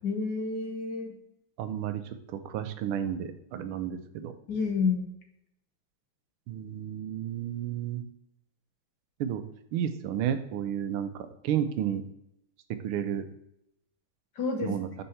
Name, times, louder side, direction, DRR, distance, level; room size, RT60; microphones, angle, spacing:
voice 1, 0.0-1.1 4.5-5.1 14.4-14.8, left 4 dB, 60° left, 3 dB, 1.4 m, -29 dB
voice 2, 1.6-4.3 6.5-8.0 9.2-9.4 9.7-12.0 12.7-13.3 14.6-14.9, right 9 dB, 80° right, 9 dB, 1.5 m, -32 dB
5.5 x 5.5 x 4.2 m, 0.79 s
omnidirectional pair, 2.4 m